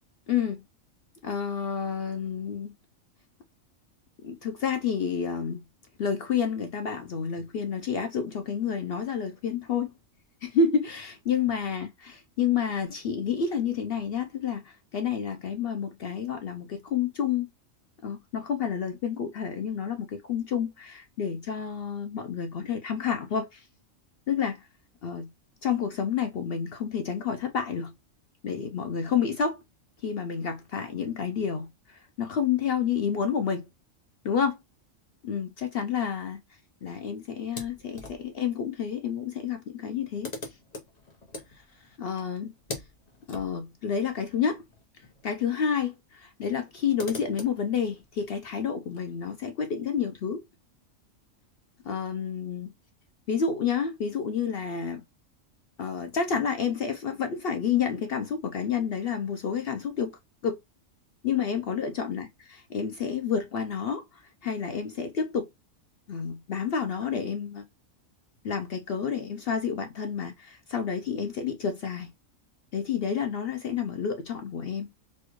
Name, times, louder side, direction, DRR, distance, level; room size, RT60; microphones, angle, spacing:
voice 1, 0.3-0.6 1.2-2.7 4.2-5.6 6.0-9.9 10.4-17.5 18.0-23.7 24.3-24.7 25.0-25.3 25.6-27.9 28.4-29.6 30.0-33.7 34.2-34.6 35.2-36.4 36.8-40.3 42.0-42.5 43.3-44.6 45.2-50.4 51.8-52.7 53.3-55.0 55.8-60.1 60.4-60.6 61.2-62.3 62.7-65.5 66.1-67.6 68.4-72.1 72.7-74.9, left 7 dB, 60° left, 0.6 m, -29 dB
sound 1, 37.4-38.5 39.5-39.6 39.8-45.3 45.6-45.7 46.5-49.0, left 2 dB, 35° left, 0.9 m, -44 dB
4.2 x 2.3 x 2.9 m
omnidirectional pair, 1.4 m